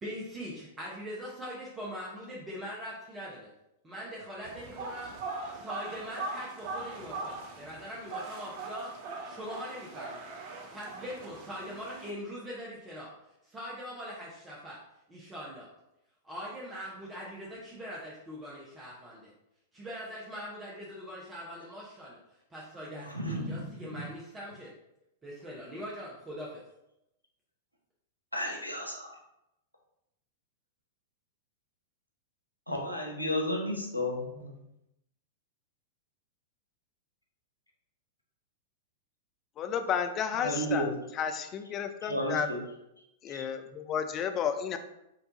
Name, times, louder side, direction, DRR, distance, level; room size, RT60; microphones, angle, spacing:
voice 1, 0.0-3.5 3.8-5.1 5.5-10.2 10.7-13.1 13.4-14.8 15.1-15.7 16.2-19.3 19.7-22.2 22.5-24.7 25.2-26.6, equal, 15° right, -5 dB, 0.9 m, -42 dB
sound 1, 4.4-12.1, right 3 dB, 45° right, 0.6 m, -41 dB
voice 2, 22.9-23.6 28.3-29.1 32.7-34.5 40.4-40.9 42.0-42.6 43.3-43.4, equal, 90° right, 1 dB, 0.8 m, -33 dB
voice 3, 39.6-40.9 41.2-42.5 43.2-44.8, left 7 dB, 30° left, 7 dB, 0.4 m, -32 dB
4.6 x 2.6 x 3.8 m, 0.86 s
figure-of-eight pair, 95°, 0 cm